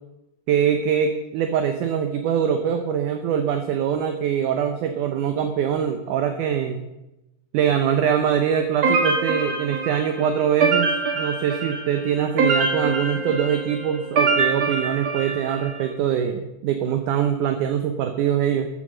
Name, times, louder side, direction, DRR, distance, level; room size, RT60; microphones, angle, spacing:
voice 1, 0.5-6.8 7.5-18.7, right 8 dB, 75° right, 6 dB, 2.0 m, -23 dB
sound 1, 8.8-15.8, right 4 dB, 50° right, 2.7 m, -24 dB
13.0 x 8.4 x 6.5 m, 0.96 s
omnidirectional pair, 4.4 m